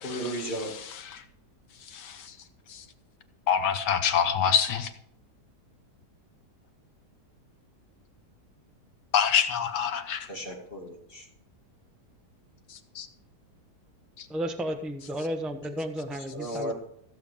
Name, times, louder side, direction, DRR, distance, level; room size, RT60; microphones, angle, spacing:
voice 1, 0.0-0.7 10.3-11.3 16.3-16.7, right 1 dB, 35° left, 2.6 m, -34 dB
voice 2, 1.9-2.3 2.7-2.8 3.5-4.9 9.1-10.3 12.9-13.1 14.2-14.3, left 7 dB, 85° left, 1.6 m, -26 dB
voice 3, 14.3-16.7, equal, ahead, 0.5 m, -33 dB
15.0 x 7.0 x 5.0 m
omnidirectional pair, 1.8 m